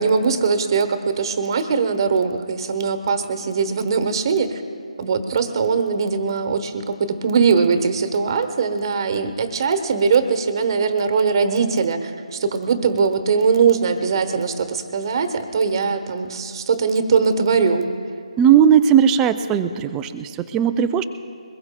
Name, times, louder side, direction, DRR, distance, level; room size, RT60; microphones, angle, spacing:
voice 1, 0.0-4.6 5.0-17.9, right 5 dB, 40° right, 9 dB, 1.0 m, -21 dB
voice 2, 18.4-21.0, right 8 dB, 10° right, 10 dB, 0.4 m, -17 dB
22.5 x 20.5 x 2.2 m, 2.3 s
figure-of-eight pair, 155°, 4 cm